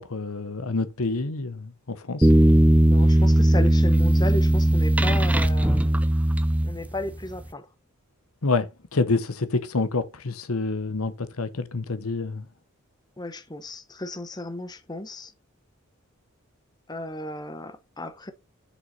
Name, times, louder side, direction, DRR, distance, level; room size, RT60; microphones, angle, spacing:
voice 1, 0.0-2.3 8.4-12.4, left 3 dB, 85° left, 1.1 m, -27 dB
sound 1, 2.2-7.1, right 1 dB, 5° right, 0.5 m, -18 dB
voice 2, 2.6-5.9 6.6-7.7 13.2-15.3 16.9-18.3, left 1 dB, 20° left, 0.9 m, -34 dB
6.3 x 6.2 x 4.1 m
head